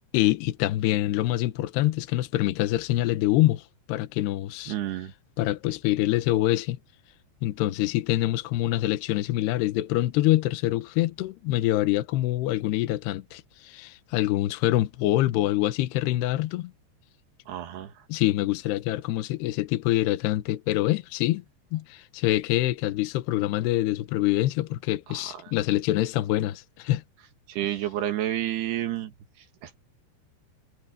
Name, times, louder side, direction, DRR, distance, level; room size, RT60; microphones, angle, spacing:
voice 1, 0.1-3.6 3.9-4.7 5.4-6.8 7.4-16.7 18.1-21.4 21.7-27.0, left 15 dB, 70° left, 2.8 m, -25 dB
voice 2, 4.7-5.1 17.5-18.1 25.1-25.5 27.5-29.7, right 12 dB, 65° right, 3.2 m, -31 dB
omnidirectional pair, 5.7 m